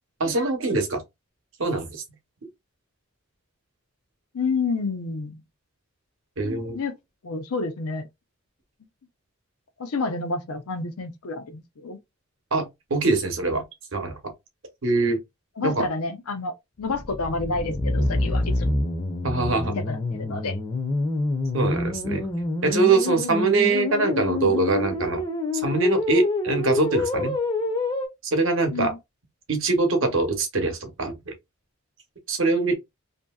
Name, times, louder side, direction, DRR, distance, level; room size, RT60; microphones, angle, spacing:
voice 1, 0.2-1.0 1.6-2.0 6.4-6.8 12.5-13.6 13.9-14.2 14.8-15.2 15.6-15.9 19.2-19.7 21.5-22.3 22.6-25.2 25.5-27.4 28.2-28.9 29.5-31.3 32.3-32.7, right 3 dB, 60° right, 0.8 m, -23 dB
voice 2, 4.3-5.4 6.7-7.0 7.2-8.1 9.8-12.0 15.6-18.8 19.7-20.6 28.7-29.0, left 3 dB, 85° left, 0.6 m, -29 dB
sound 1, 16.8-28.1, left 2 dB, 20° left, 0.5 m, -27 dB
2.7 x 2.7 x 2.2 m
head